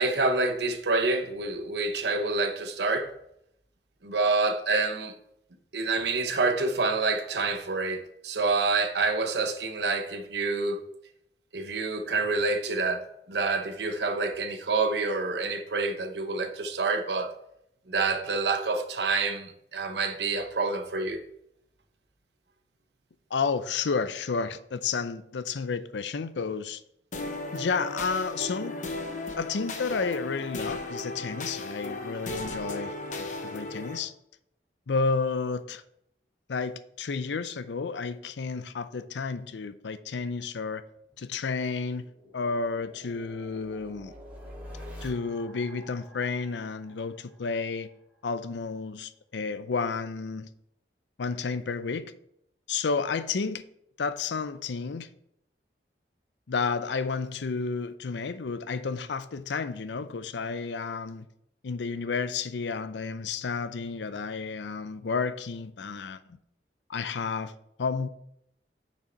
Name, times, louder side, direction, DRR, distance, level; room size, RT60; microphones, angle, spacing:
voice 1, 0.0-3.1 4.0-5.1 5.7-10.8 11.5-13.0 13.3-17.3 17.9-21.2, right 3 dB, 75° right, 1.0 m, -27 dB
voice 2, 23.3-26.8 27.5-28.7 29.4-34.1 34.9-35.8 36.5-40.8 41.2-42.1 42.3-44.1 45.0-47.9 48.2-50.5 51.2-52.1 52.7-53.6 54.0-55.1 56.5-61.3 61.6-66.4 66.9-67.5 67.8-68.1, left 4 dB, 85° left, 0.5 m, -31 dB
sound 1, 27.1-34.0, left 2 dB, 45° left, 0.9 m, -36 dB
sound 2, 41.1-47.9, equal, 10° right, 2.4 m, -47 dB
6.6 x 6.2 x 4.4 m
head